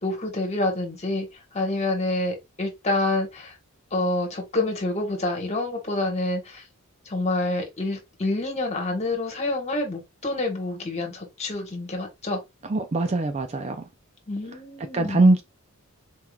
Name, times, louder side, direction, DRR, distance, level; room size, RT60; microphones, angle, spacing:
voice 1, 0.0-1.3 1.5-3.5 3.9-6.6 7.0-12.4 14.3-15.3, left 2 dB, 30° left, 1.3 m, -27 dB
voice 2, 12.7-13.8 14.9-15.4, right 2 dB, 30° right, 0.4 m, -21 dB
4.4 x 3.6 x 2.3 m
head